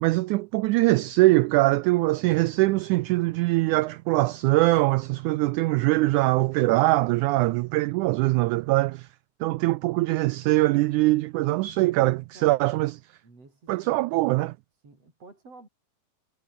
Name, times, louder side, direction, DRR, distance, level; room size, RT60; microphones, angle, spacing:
voice 1, 0.0-9.1 9.4-12.9 13.7-14.5, right 20 dB, 85° right, 1.7 m, -22 dB
voice 2, 12.3-12.7 13.2-14.0 14.8-15.7, right 3 dB, 45° right, 8.3 m, -50 dB
omnidirectional pair, 3.9 m